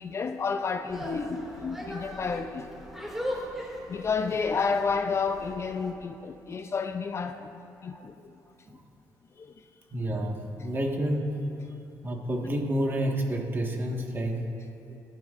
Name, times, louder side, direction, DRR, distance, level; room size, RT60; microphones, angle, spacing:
voice 1, 0.0-2.7 3.9-7.5 7.8-8.4 9.4-9.6 14.9-15.0, left 5 dB, 40° left, 7 dB, 0.5 m, -31 dB
sound 1, 0.9-5.9, equal, 5° right, 2.2 m, -39 dB
voice 2, 9.9-11.3 12.0-14.4, right 1 dB, 30° right, 1 dB, 1.6 m, -29 dB
18.0 x 12.0 x 2.5 m, 2.7 s
cardioid pair, 90°, 7 cm